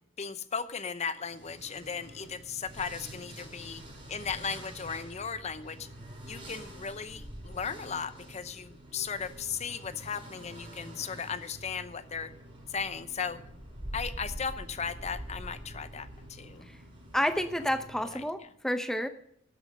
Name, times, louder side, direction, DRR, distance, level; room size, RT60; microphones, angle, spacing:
voice 1, 0.2-3.8 4.1-5.9 6.3-12.3 12.7-13.4 13.9-16.7 18.0-18.5, left 6 dB, 35° left, 13 dB, 0.7 m, -36 dB
sound 1, 1.2-18.4, right 1 dB, 25° right, 5.5 m, -46 dB
voice 2, 17.1-18.4 18.6-19.1, equal, ahead, 9 dB, 0.6 m, -29 dB
12.5 x 9.1 x 6.5 m, 0.71 s
head